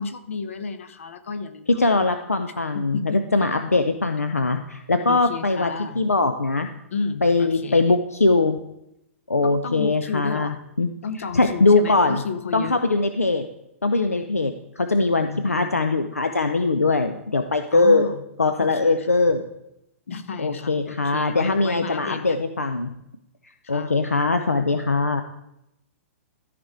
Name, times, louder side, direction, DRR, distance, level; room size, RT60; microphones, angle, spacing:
voice 1, 0.0-2.1 2.7-3.2 5.1-6.0 6.9-7.8 9.4-10.6 11.0-12.8 15.2-15.8 17.7-18.2 18.6-19.1 20.1-22.4 23.6-24.0, left 5 dB, 65° left, 10 dB, 1.0 m, -32 dB
voice 2, 1.7-5.7 6.0-6.7 7.2-8.6 9.3-10.9 11.3-12.2 12.5-13.4 13.8-18.1 18.4-19.4 20.4-22.9 23.7-25.2, left 3 dB, 80° left, 8 dB, 0.6 m, -21 dB
13.0 x 5.2 x 4.7 m, 0.84 s
figure-of-eight pair, 110°, 8 cm